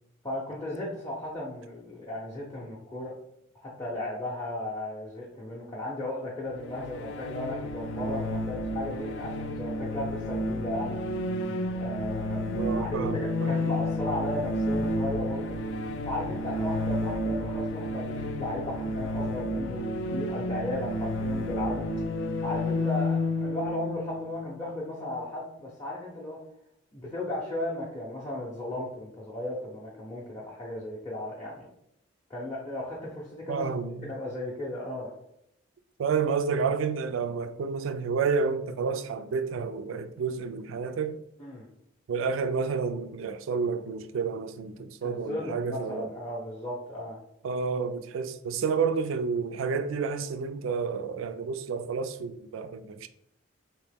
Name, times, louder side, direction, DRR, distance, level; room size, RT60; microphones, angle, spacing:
voice 1, 0.2-3.2 3.6-11.0 11.7-12.4 12.7-15.6 16.1-19.8 20.1-21.9 22.4-26.4 26.9-31.7 32.3-33.7 34.0-35.1 41.4-41.7 44.8-47.2, left 1 dB, 15° left, 0.6 m, -35 dB
sound 1, 6.6-25.2, left 1 dB, 70° left, 0.4 m, -31 dB
voice 2, 12.5-13.5 33.5-34.1 36.0-41.2 42.1-46.1 47.4-53.1, right 5 dB, 80° right, 0.3 m, -30 dB
3.0 x 2.8 x 3.4 m
head